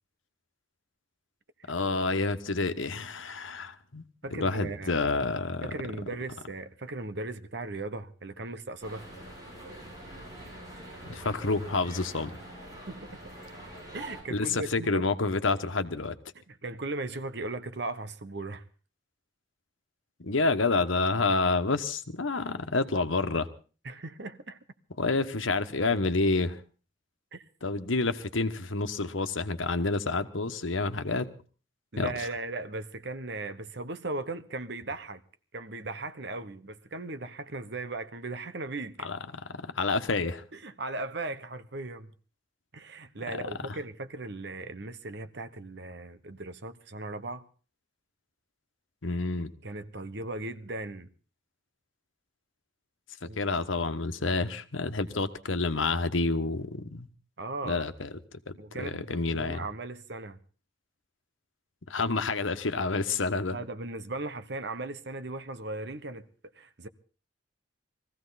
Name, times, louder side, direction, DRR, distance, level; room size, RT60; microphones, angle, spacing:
voice 1, 1.7-4.0 4.3-5.7 11.0-12.3 14.3-16.1 20.2-23.5 25.0-26.6 27.6-31.3 32.0-32.1 39.0-40.4 49.0-49.5 53.4-57.1 57.6-58.1 58.5-59.7 61.9-63.6, left 3 dB, 85° left, 1.2 m, -28 dB
voice 2, 4.2-5.0 5.6-9.1 12.9-13.1 13.9-15.0 16.5-18.6 23.8-24.6 27.3-27.4 31.9-35.2 35.5-39.1 40.5-42.1 42.7-47.4 49.6-51.1 53.2-53.4 57.4-57.9 58.6-60.4 63.5-66.3 66.5-66.9, right 2 dB, 60° right, 1.1 m, -37 dB
sound 1, 8.8-14.2, right 1 dB, 20° right, 7.1 m, -45 dB
21.5 x 15.0 x 4.1 m
head